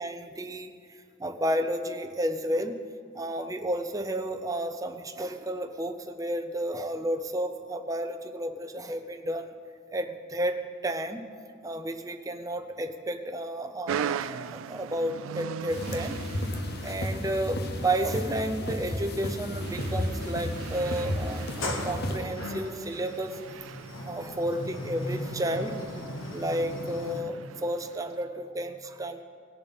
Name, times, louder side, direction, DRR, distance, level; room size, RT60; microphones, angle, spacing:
voice 1, 0.0-2.8 3.1-9.5 9.9-11.3 11.6-16.2 16.8-23.4 24.1-25.8 26.3-29.2, right 1 dB, 15° right, 7 dB, 0.6 m, -32 dB
sound 1, 13.9-28.2, right 8 dB, 80° right, 0.3 m, -40 dB
sound 2, 15.7-22.2, left 1 dB, 55° left, 0.9 m, -33 dB
Sliding door, 21.2-27.2, left 1 dB, 85° left, 1.4 m, -37 dB
18.0 x 7.0 x 4.1 m, 2.2 s
head